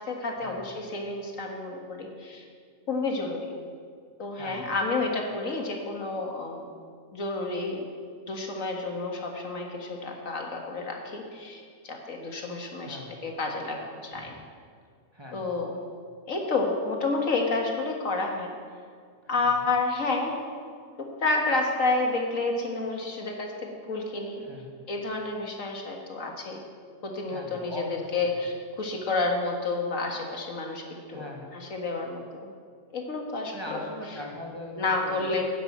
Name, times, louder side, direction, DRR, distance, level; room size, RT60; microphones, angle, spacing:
voice 1, 0.0-2.5 2.9-3.5 4.2-6.7 7.1-7.9 8.3-14.3 15.3-15.8 16.3-18.5 19.3-20.3 21.0-23.5 23.9-24.4 24.9-26.6 27.0-31.2 31.5-32.5 32.9-33.8 34.8-35.4, left 3 dB, 80° left, 1 dB, 2.0 m, -30 dB
voice 2, 4.3-4.7 12.8-13.1 14.1-14.4 15.1-15.6 19.2-19.5 24.4-24.8 27.3-28.3 31.1-31.6 33.5-35.4, equal, 20° right, -1 dB, 1.8 m, -41 dB
11.5 x 9.8 x 7.3 m, 2.1 s
omnidirectional pair, 1.4 m